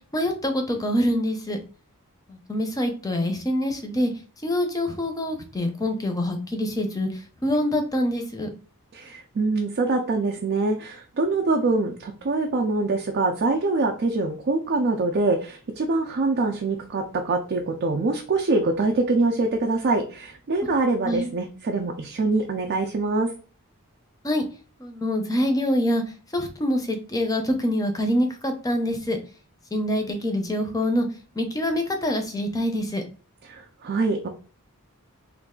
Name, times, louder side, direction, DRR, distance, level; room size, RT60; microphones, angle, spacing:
voice 1, 0.1-1.6 2.3-4.1 4.4-7.1 7.4-8.5 21.0-21.3 24.2-24.4 24.8-26.0 26.3-29.2 29.7-31.1 31.4-33.0, left 1 dB, 15° left, 5 dB, 0.6 m, -25 dB
voice 2, 8.9-23.3 33.5-34.3, right 3 dB, 50° right, 2 dB, 0.4 m, -24 dB
3.2 x 2.3 x 3.6 m, 0.38 s
head